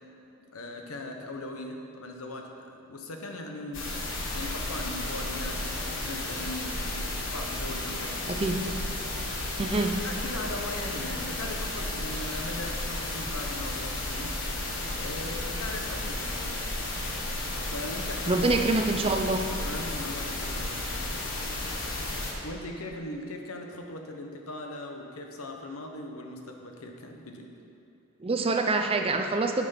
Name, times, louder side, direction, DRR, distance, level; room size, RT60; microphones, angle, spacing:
voice 1, 0.5-3.9 4.3-8.3 10.0-14.3 14.9-16.5 17.7-18.4 19.6-20.8 22.4-27.5, left 1 dB, 80° left, 3 dB, 1.0 m, -39 dB
sound 1, 3.7-22.3, left 2 dB, 60° left, 1.5 m, -33 dB
voice 2, 8.3-8.6 9.6-10.0 18.3-19.4 28.2-29.7, right 3 dB, 25° right, 4 dB, 0.5 m, -26 dB
8.9 x 6.0 x 5.8 m, 2.8 s
head